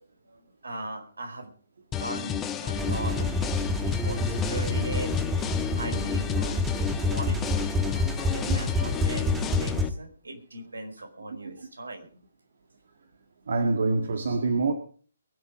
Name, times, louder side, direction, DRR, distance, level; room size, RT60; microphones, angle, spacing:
voice 1, 0.2-1.5 2.0-5.2 5.8-6.6 7.1-12.1, right 2 dB, 75° right, 4.7 m, -39 dB
sound 1, 1.9-9.9, left 9 dB, 15° left, 1.1 m, -32 dB
sound 2, 2.8-9.8, left 1 dB, 10° right, 1.8 m, -28 dB
voice 2, 8.1-8.6 11.4-11.5 13.5-14.7, right 3 dB, 60° right, 1.9 m, -27 dB
23.0 x 8.7 x 5.0 m
figure-of-eight pair, 135°, 0 cm